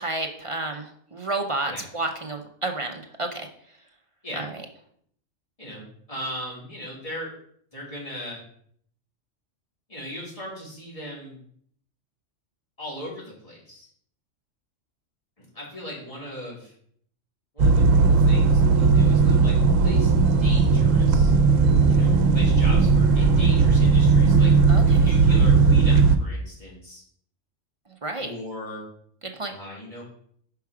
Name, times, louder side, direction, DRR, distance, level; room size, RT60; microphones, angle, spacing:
voice 1, 0.0-3.5 4.4-4.5 24.7-25.1 28.0-28.3 29.3-29.5, right 2 dB, 35° right, 3 dB, 0.6 m, -30 dB
voice 2, 6.1-7.3 7.7-8.4 9.9-11.4 12.8-13.9 15.4-16.7 17.5-20.1 20.4-21.3 21.9-24.5 25.0-27.0 28.2-28.8 29.5-30.0, equal, 25° left, -6 dB, 3.0 m, -38 dB
sound 1, 17.6-26.2, right 4 dB, 85° right, 1.0 m, -17 dB
5.8 x 4.7 x 4.8 m, 0.64 s
omnidirectional pair, 1.3 m